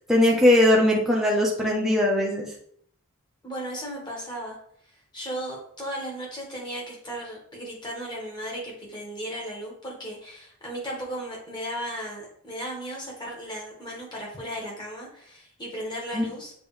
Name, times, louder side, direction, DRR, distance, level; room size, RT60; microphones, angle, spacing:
voice 1, 0.0-2.5 16.1-16.2, left 1 dB, ahead, -3 dB, 1.1 m, -20 dB
voice 2, 3.4-4.6 5.1-16.5, equal, 20° left, -2 dB, 1.8 m, -35 dB
7.5 x 3.8 x 3.4 m, 0.64 s
head